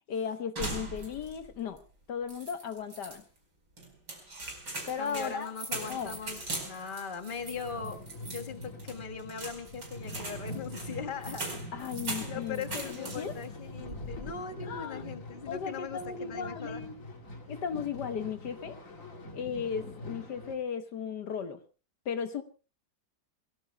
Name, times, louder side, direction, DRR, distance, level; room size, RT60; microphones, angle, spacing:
voice 1, 0.1-1.8 2.1-3.2 4.9-5.5 5.7-6.2 11.7-13.3 14.6-15.0 15.5-16.9 17.5-18.8 19.3-21.6 22.0-22.4, left 7 dB, 70° left, 9 dB, 1.6 m, -36 dB
sound 1, 0.6-1.5 1.8-1.9 2.3-3.2 3.8-13.5 13.8-14.3, right 2 dB, 85° right, 5.5 m, -40 dB
voice 2, 5.0-11.6 12.2-16.8, left 6 dB, 30° left, 5 dB, 1.6 m, -40 dB
sound 2, 7.3-20.5, left 1 dB, 45° left, 2.8 m, -44 dB
27.5 x 18.5 x 2.3 m, 0.35 s
omnidirectional pair, 1.9 m